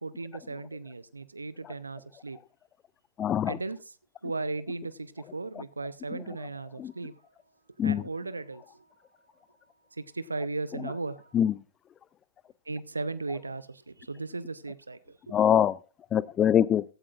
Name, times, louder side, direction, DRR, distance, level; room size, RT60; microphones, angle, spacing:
voice 1, 0.0-2.4 3.5-3.8 4.2-7.1 7.8-8.9 9.9-11.3 12.7-15.4, right 3 dB, 80° right, 0.6 m, -36 dB
voice 2, 3.2-3.6 6.1-6.2 6.8-6.9 7.8-8.1 10.8-10.9 11.3-11.6 15.3-15.8 16.1-16.8, left 9 dB, 25° left, 0.5 m, -24 dB
16.0 x 12.5 x 2.5 m
figure-of-eight pair, 100°, 0 cm